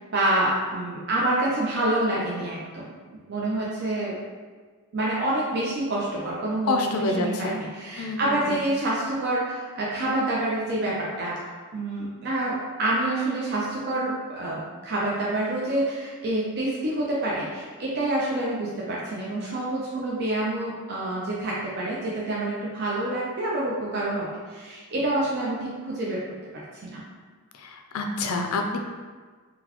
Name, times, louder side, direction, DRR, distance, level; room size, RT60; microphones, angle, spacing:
voice 1, 0.1-4.2 4.9-26.2 26.8-27.0, right 1 dB, 50° right, -5 dB, 0.5 m, -27 dB
voice 2, 6.7-7.6 8.0-8.6 27.5-28.8, left 2 dB, 75° left, 4 dB, 0.4 m, -27 dB
3.9 x 2.2 x 2.9 m, 1.5 s
head